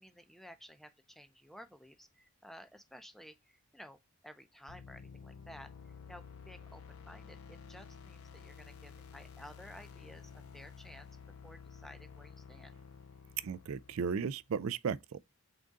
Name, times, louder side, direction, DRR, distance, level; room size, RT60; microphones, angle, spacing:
voice 1, 0.0-4.0 4.2-12.7, equal, ahead, 0.5 m, -54 dB
sound 1, 4.7-14.5, left 6 dB, 70° left, 0.5 m, -52 dB
voice 2, 13.4-15.2, right 6 dB, 65° right, 0.4 m, -35 dB
3.9 x 3.6 x 3.6 m
head